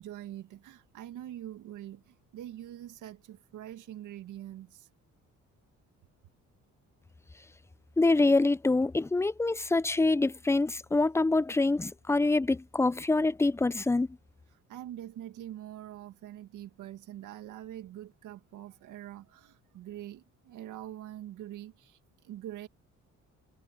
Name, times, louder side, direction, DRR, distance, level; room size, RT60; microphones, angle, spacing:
voice 1, 0.0-4.9 14.7-22.7, right 12 dB, 85° right, 2.1 m, -44 dB
voice 2, 8.0-14.1, left 2 dB, 10° left, 0.4 m, -25 dB
cardioid pair, 90°, 30 cm